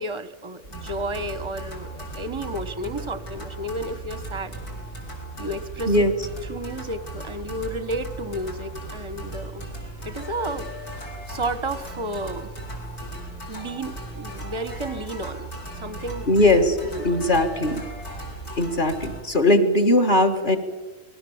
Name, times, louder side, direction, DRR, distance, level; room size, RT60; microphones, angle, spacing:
voice 1, 0.0-4.5 5.4-6.1 6.5-9.7 10.0-10.7 11.3-12.5 13.5-16.3 16.9-17.3, right 1 dB, 20° right, 12 dB, 0.9 m, -32 dB
sound 1, 0.6-19.2, right 2 dB, 60° left, 5.1 m, -37 dB
voice 2, 16.3-16.8 17.0-17.8 18.6-20.6, left 1 dB, 30° left, 7 dB, 2.0 m, -19 dB
27.5 x 20.0 x 7.2 m, 1.2 s
omnidirectional pair, 1.8 m